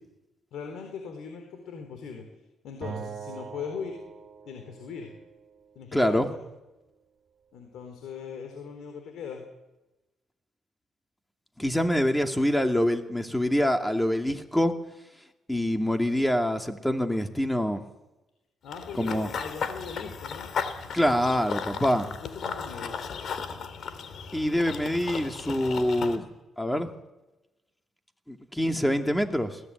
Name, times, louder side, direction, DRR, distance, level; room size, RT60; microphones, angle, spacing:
voice 1, 0.5-2.2 2.6-4.0 4.5-5.1 5.8-6.4 7.5-9.4 18.6-20.5 22.2-23.0, left 6 dB, 80° left, 4 dB, 4.1 m, -39 dB
Acoustic guitar, 2.8-6.1, right 6 dB, 45° right, 4.0 m, -43 dB
voice 2, 5.9-6.3 11.6-14.7 15.5-17.8 18.9-19.3 20.9-22.1 24.3-26.3 26.6-26.9 28.3-29.6, equal, 5° left, 5 dB, 2.5 m, -25 dB
Run / Bird vocalization bird call bird song, 18.7-26.2, left 6 dB, 60° left, 2.9 m, -35 dB
21.0 x 17.5 x 9.3 m, 1.0 s
cardioid pair, 90°, 0 cm